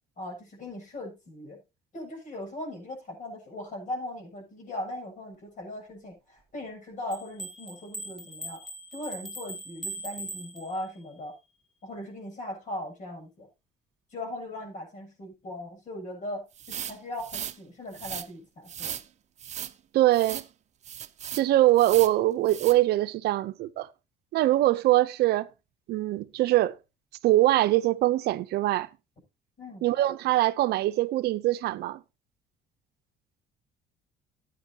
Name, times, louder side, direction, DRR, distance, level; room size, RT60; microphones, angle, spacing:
voice 1, 0.2-1.6 1.9-8.7 8.9-11.3 11.8-13.5 14.1-18.9 29.6-29.9, left 1 dB, 50° left, 7.5 m, -39 dB
sound 1, 7.1-11.1, right 1 dB, ahead, 1.3 m, -40 dB
sound 2, 16.6-17.6 17.9-18.3 18.7-19.1 19.4-19.7 20.1-20.5 20.8-21.5 21.8-22.2 22.5-22.8, right 9 dB, 45° right, 0.8 m, -37 dB
voice 2, 19.9-20.4 21.3-23.9 24.3-25.5 25.9-26.8 27.2-28.9 29.8-32.0, right 16 dB, 75° right, 0.7 m, -23 dB
15.0 x 9.1 x 2.8 m
cardioid pair, 110°, 17 cm